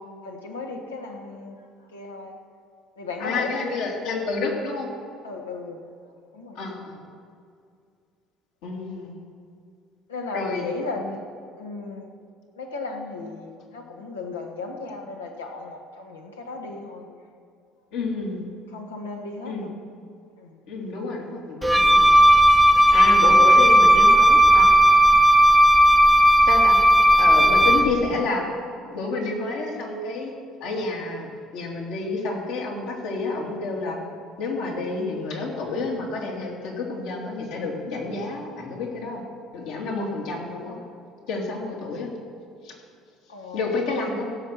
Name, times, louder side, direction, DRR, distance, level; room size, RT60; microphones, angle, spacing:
voice 1, 0.2-1.6 1.9-2.4 3.0-3.7 5.2-5.8 6.3-6.6 10.1-11.2 11.6-12.1 12.6-17.1 18.7-19.7 20.4-20.6 23.2-23.4 27.2-28.0 43.3-44.1, left 3 dB, 85° left, 1 dB, 1.5 m, -35 dB
voice 2, 3.2-4.9 6.5-7.0 8.6-9.1 10.3-10.6 17.9-18.4 19.4-19.7 20.7-22.1 22.9-24.7 26.5-26.8 27.2-28.4 28.9-30.3 30.6-34.0 34.4-39.2 39.5-40.8 41.3-42.1 42.6-42.7 43.5-44.2, left 3 dB, 70° left, -2 dB, 2.7 m, -29 dB
Wind instrument woodwind instrument, 21.6-27.9, equal, 5° right, 0.7 m, -15 dB
16.0 x 6.1 x 7.2 m, 2.3 s
hypercardioid pair, 60°, 0 cm